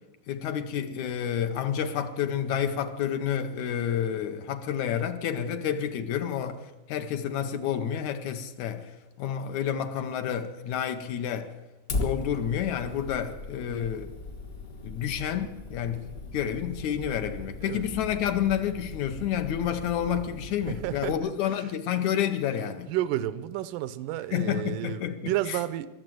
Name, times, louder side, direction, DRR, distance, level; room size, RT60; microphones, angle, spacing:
voice 1, 0.3-8.9 9.2-11.5 12.0-14.1 14.8-22.9 24.3-25.6, left 9 dB, 70° left, 2.0 m, -29 dB
Fire, 11.9-21.2, left 2 dB, 50° left, 1.0 m, -38 dB
voice 2, 17.6-17.9 20.7-21.3 22.6-25.9, right 13 dB, 90° right, 2.3 m, -31 dB
22.5 x 7.6 x 7.7 m
omnidirectional pair, 3.7 m